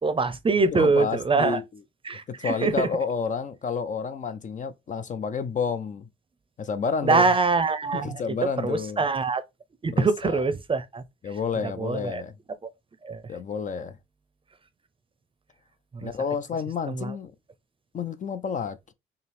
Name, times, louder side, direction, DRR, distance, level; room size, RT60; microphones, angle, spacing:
voice 1, 0.0-1.6 2.0-2.9 7.0-9.4 9.8-12.2 12.6-12.7 13.0-13.3 15.9-16.1 16.9-17.2, right 4 dB, 25° right, 0.6 m, -25 dB
voice 2, 0.7-1.6 2.4-6.1 6.6-7.3 8.0-9.0 10.0-10.4 11.2-12.3 13.3-14.0 16.0-17.3 17.9-18.9, left 6 dB, 40° left, 0.4 m, -30 dB
5.6 x 2.0 x 3.4 m
cardioid pair, 90°, 20 cm